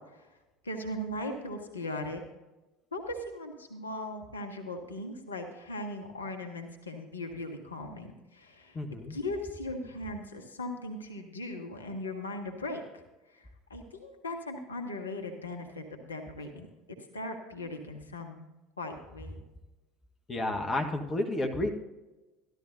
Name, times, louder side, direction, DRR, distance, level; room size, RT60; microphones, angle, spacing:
voice 1, 0.6-2.2 2.9-8.8 9.1-12.8 13.3-16.7 17.1-18.5 18.8-19.4, left 1 dB, 85° left, 4 dB, 0.9 m, -38 dB
voice 2, 8.7-9.2 20.3-21.7, left 1 dB, 25° left, 5 dB, 1.3 m, -31 dB
13.5 x 11.5 x 2.6 m, 1.1 s
figure-of-eight pair, 65°, 0 cm